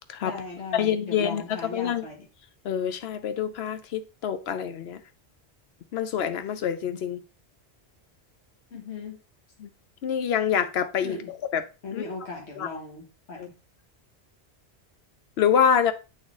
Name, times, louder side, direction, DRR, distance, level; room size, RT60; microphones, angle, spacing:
voice 1, 0.2-2.2 8.7-9.2 11.0-11.3 11.8-13.4, left 4 dB, 90° left, 1.7 m, -37 dB
voice 2, 0.7-1.4 1.7-2.0 2.6-5.0 5.9-7.2 9.6-9.7 10.0-11.1 11.5-11.6 11.9-12.0 12.6-12.7 13.4-13.5 15.4-15.9, left 8 dB, 70° left, 0.9 m, -26 dB
8.0 x 4.0 x 3.6 m
omnidirectional pair, 1.1 m